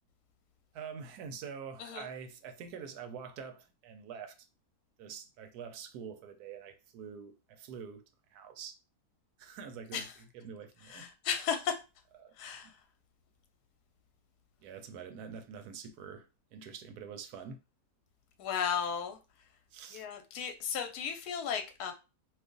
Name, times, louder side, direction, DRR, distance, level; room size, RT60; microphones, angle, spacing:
voice 1, 0.7-4.3 5.0-8.0 8.3-8.7 9.4-11.1 12.2-12.3 12.6-12.7 14.6-17.6 19.7-20.1, right 6 dB, 80° right, 1.1 m, -46 dB
voice 2, 10.9-11.7 12.4-12.7 18.4-19.2 19.9-21.9, left 7 dB, 80° left, 1.2 m, -34 dB
2.6 x 2.4 x 3.7 m
omnidirectional pair, 1.7 m